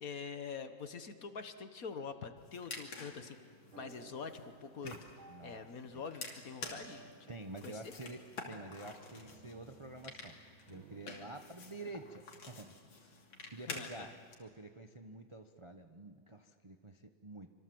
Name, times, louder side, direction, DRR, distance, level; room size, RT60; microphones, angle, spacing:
voice 1, 0.0-3.4 3.8-5.0 5.4-7.3 7.6-7.9 13.7-14.1, left 5 dB, 50° left, 9 dB, 1.5 m, -45 dB
sound 1, 2.4-14.3, left 3 dB, 80° left, 3.4 m, -50 dB
sound 2, 3.7-11.1, right 4 dB, 80° right, 2.5 m, -60 dB
voice 2, 5.3-6.0 7.3-10.4 10.7-14.1 14.4-17.5, right 2 dB, 30° right, 6 dB, 0.5 m, -49 dB
26.5 x 25.5 x 7.8 m, 2.1 s
omnidirectional pair, 2.1 m